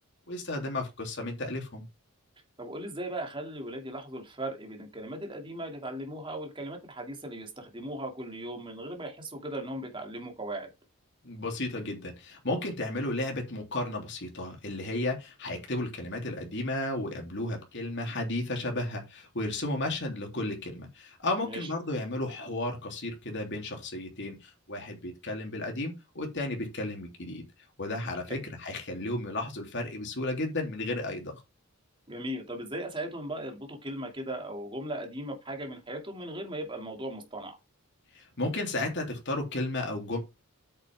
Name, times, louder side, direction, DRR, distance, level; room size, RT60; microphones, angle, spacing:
voice 1, 0.3-1.9 11.2-27.4 27.8-31.4 38.1-40.2, left 2 dB, 55° left, 3.3 m, -33 dB
voice 2, 2.6-10.7 21.4-21.7 28.3-28.4 32.1-37.6, right 1 dB, 25° right, 2.7 m, -38 dB
8.7 x 6.7 x 3.6 m
head